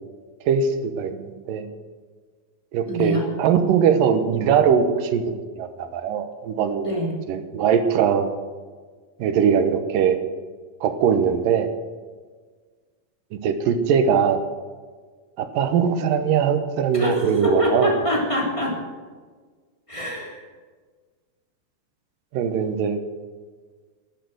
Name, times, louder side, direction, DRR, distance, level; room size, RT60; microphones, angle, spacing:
voice 1, 0.4-1.7 2.7-6.9 7.3-8.3 9.2-10.2 10.8-11.7 13.3-14.4 15.4-17.9 22.3-23.0, right 7 dB, 75° right, 9 dB, 2.6 m, -21 dB
voice 2, 2.8-3.2 6.8-7.1 16.9-18.8 19.9-20.4, equal, 10° left, -2 dB, 2.6 m, -24 dB
11.5 x 10.5 x 7.7 m, 1.5 s
omnidirectional pair, 4.2 m